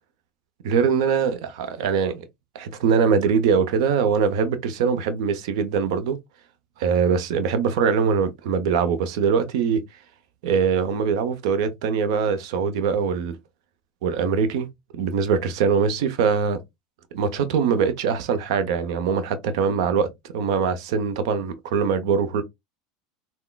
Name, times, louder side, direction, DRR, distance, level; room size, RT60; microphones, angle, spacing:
voice 1, 0.6-2.2 2.5-6.2 6.8-9.8 10.4-13.3 14.0-14.7 14.9-16.6 17.1-22.4, right 6 dB, 75° right, 0.7 m, -22 dB
3.8 x 2.1 x 2.3 m
hypercardioid pair, 100°, 3 cm